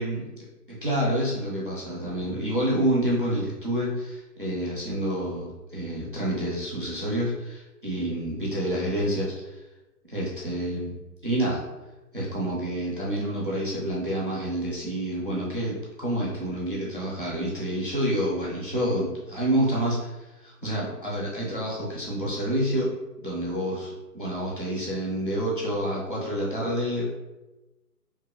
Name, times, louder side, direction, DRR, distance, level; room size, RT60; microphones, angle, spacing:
voice 1, 0.0-9.6 10.1-10.9 11.2-11.6 12.1-22.9 23.2-27.0, right 1 dB, 35° right, -5 dB, 0.4 m, -28 dB
2.7 x 2.2 x 2.6 m, 1.1 s
hypercardioid pair, 160°, 48 cm